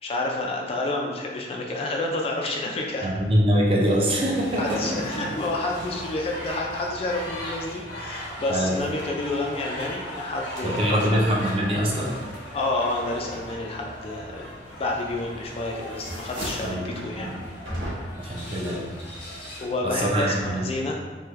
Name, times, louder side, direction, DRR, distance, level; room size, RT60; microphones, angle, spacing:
voice 1, 0.0-3.1 4.6-11.2 12.5-14.5 14.8-17.3 18.2-18.4 19.6-21.0, left 2 dB, 30° left, 0 dB, 0.3 m, -29 dB
voice 2, 3.0-5.3 8.5-8.8 10.6-12.2 16.6-17.3 18.1-18.9 19.8-20.6, equal, 30° right, -3 dB, 0.5 m, -24 dB
sound 1, 4.3-19.7, equal, 85° left, 1.1 m, -38 dB
sound 2, 15.1-15.5 15.8-16.8 17.6-18.3, equal, 85° right, 1.1 m, -34 dB
3.2 x 2.2 x 3.1 m, 1.4 s
head